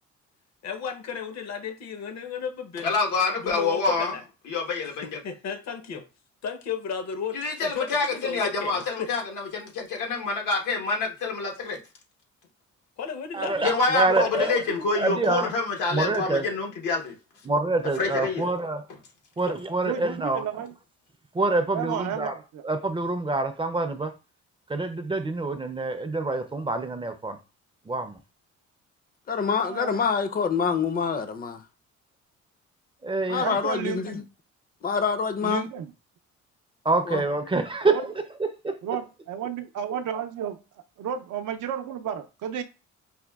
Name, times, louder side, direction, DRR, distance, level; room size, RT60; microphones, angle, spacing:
voice 1, 0.6-3.0 3.4-4.2 5.0-6.0 6.4-9.1 13.0-13.6 14.2-14.6 18.4-18.5 19.4-19.5, left 6 dB, 60° left, 0.8 m, -34 dB
voice 2, 2.8-4.1 4.5-5.2 7.3-11.8 13.6-17.1 18.0-18.4, left 4 dB, 90° left, 1.1 m, -27 dB
voice 3, 13.3-14.6 14.9-15.5 15.9-16.4 17.4-18.8 19.4-20.5 21.3-22.4 22.6-24.1 24.7-27.4 27.9-28.2 33.0-33.5 36.8-38.1, right 2 dB, 15° right, 0.4 m, -26 dB
voice 4, 19.8-20.7 21.7-22.6 29.7-30.0 33.4-34.2 35.4-35.9 37.8-38.0 38.8-40.6 41.0-42.6, right 8 dB, 80° right, 0.6 m, -32 dB
voice 5, 29.3-31.6 33.3-34.2 34.8-35.7 37.1-37.2, left 6 dB, 30° left, 0.5 m, -26 dB
5.0 x 2.2 x 2.3 m
cardioid pair, 90°, 30 cm